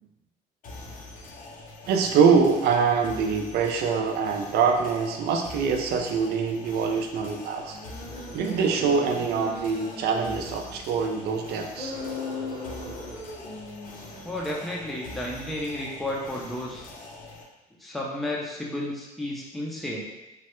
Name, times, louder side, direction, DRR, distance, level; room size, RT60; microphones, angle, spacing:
sound 1, 0.6-17.4, left 2 dB, 50° left, 0.5 m, -44 dB
voice 1, 1.9-7.8 8.3-11.9, right 5 dB, 70° right, 4 dB, 0.4 m, -24 dB
sound 2, 3.0-3.3 3.9-4.0 7.7-11.0 11.7-14.6, left 2 dB, 85° left, 1.5 m, -39 dB
voice 2, 14.2-16.9 17.8-20.0, left 1 dB, ahead, -3 dB, 0.5 m, -32 dB
3.2 x 2.1 x 3.0 m, 1.0 s
cardioid pair, 110°, 17 cm